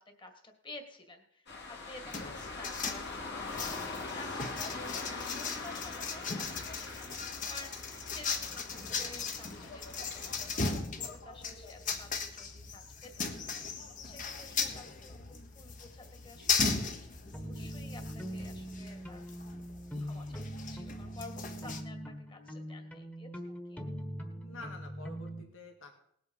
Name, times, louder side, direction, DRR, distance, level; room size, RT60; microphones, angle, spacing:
voice 1, 0.0-2.3 2.6-13.4 14.0-19.3 20.0-23.8, left 2 dB, 25° left, 5 dB, 2.0 m, -52 dB
sound 1, 1.5-10.5, left 3 dB, 60° left, 2.7 m, -43 dB
sound 2, 2.1-21.8, left 5 dB, 45° left, 1.4 m, -38 dB
voice 2, 2.2-2.5 6.2-6.3 14.7-14.9 24.4-26.0, left 2 dB, 90° left, 3 dB, 2.1 m, -50 dB
sound 3, 17.3-25.4, equal, 10° left, 1.4 m, -42 dB
19.0 x 7.9 x 5.5 m, 0.71 s
head